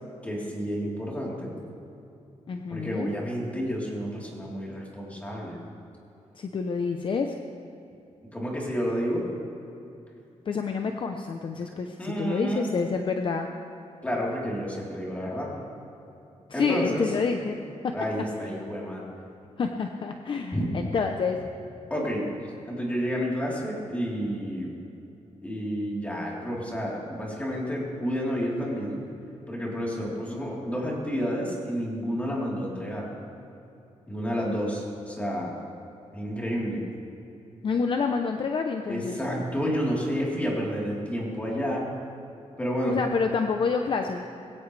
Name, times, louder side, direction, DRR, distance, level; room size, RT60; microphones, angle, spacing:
voice 1, 0.2-1.5 2.7-5.6 8.3-9.2 12.0-12.7 14.0-15.5 16.5-17.0 17.9-19.0 20.5-20.7 21.9-22.3 22.6-24.8 25.4-29.0 29.5-33.0 34.1-35.5 36.1-36.8 38.9-41.8 42.6-43.0, equal, 10° left, -5 dB, 3.7 m, -30 dB
voice 2, 2.5-3.1 6.3-7.4 10.5-13.5 15.2-15.3 16.5-17.9 19.6-21.4 37.6-39.2 42.8-44.3, left 5 dB, 45° left, 4 dB, 0.7 m, -28 dB
21.5 x 16.5 x 3.4 m, 2.9 s
wide cardioid pair, 145°, 12 cm